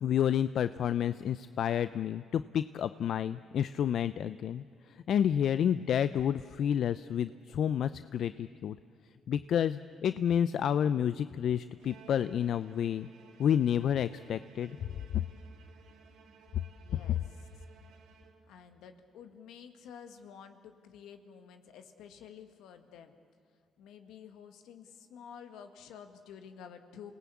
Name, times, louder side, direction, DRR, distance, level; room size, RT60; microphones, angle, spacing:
voice 1, 0.0-4.6 5.1-8.8 9.3-13.1 13.4-14.8 15.1-15.2, left 9 dB, 70° left, 13 dB, 0.5 m, -29 dB
Bowed string instrument, 11.8-18.8, right 6 dB, 90° right, 3.1 m, -58 dB
voice 2, 16.7-17.2 18.4-23.1 23.8-27.1, left 7 dB, 90° left, 7 dB, 1.9 m, -51 dB
28.0 x 18.5 x 8.5 m, 2.6 s
cardioid pair, 90°, 0 cm